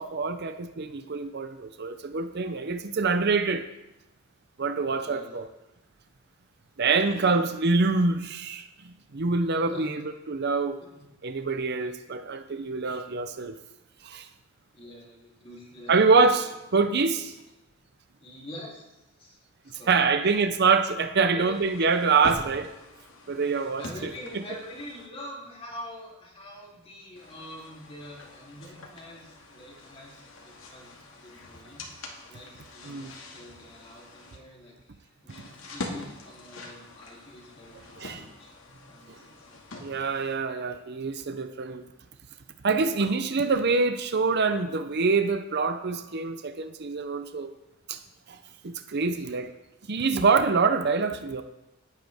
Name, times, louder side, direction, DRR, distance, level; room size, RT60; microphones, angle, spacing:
voice 1, 0.0-3.6 4.6-5.5 6.8-8.6 9.1-10.0 10.3-10.8 11.2-13.6 14.0-14.3 15.9-17.3 19.9-22.7 23.3-23.8 32.9-33.1 38.0-38.2 39.8-41.8 42.6-47.5 47.9-48.0 48.3-48.4 48.6-49.5 49.9-51.4, right 4 dB, 55° right, 8 dB, 0.7 m, -25 dB
voice 2, 4.8-5.4 6.8-7.0 9.6-10.0 10.8-11.0 14.7-16.4 16.8-17.4 18.2-20.3 21.2-21.5 23.3-31.9 32.3-38.5 38.9-39.6 49.0-49.5, left 1 dB, 30° left, -4 dB, 3.2 m, -45 dB
sound 1, 21.5-25.1 27.2-34.4 35.3-40.4, left 2 dB, 75° left, 2.2 m, -44 dB
18.5 x 9.2 x 3.6 m, 0.94 s
head